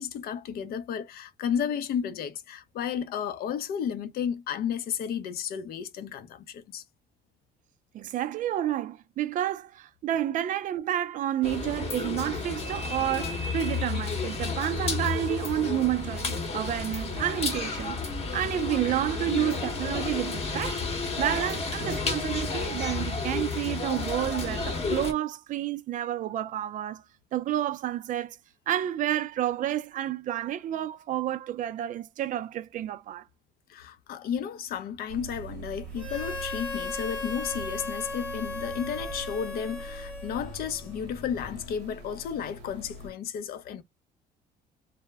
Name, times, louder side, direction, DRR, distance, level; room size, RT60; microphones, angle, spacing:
voice 1, 0.0-6.8 33.7-43.8, left 8 dB, 65° left, 0.5 m, -33 dB
voice 2, 7.9-18.0 18.3-20.8 21.2-27.0 27.3-28.4 28.7-33.2, right 12 dB, 50° right, 0.4 m, -30 dB
sound 1, 11.4-25.1, left 4 dB, 35° left, 0.9 m, -31 dB
sound 2, 35.1-43.1, right 3 dB, 85° right, 0.7 m, -43 dB
Harmonica, 35.9-40.8, left 3 dB, 5° left, 0.8 m, -37 dB
2.1 x 2.0 x 3.3 m
cardioid pair, 110°, 17 cm